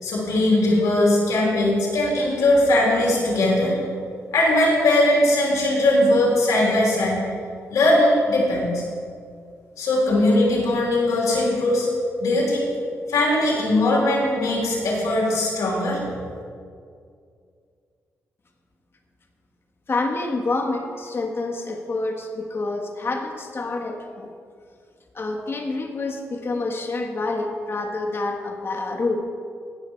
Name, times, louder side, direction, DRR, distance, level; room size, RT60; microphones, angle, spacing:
voice 1, 0.0-3.7 4.3-7.2 7.7-8.8 9.8-11.9 12.2-12.7 13.1-16.0, left 1 dB, 85° left, -4 dB, 2.9 m, -20 dB
voice 2, 19.9-24.3 25.1-29.2, left 3 dB, 45° left, 2 dB, 1.5 m, -27 dB
16.0 x 5.7 x 4.5 m, 2.3 s
cardioid pair, 60°, 6 cm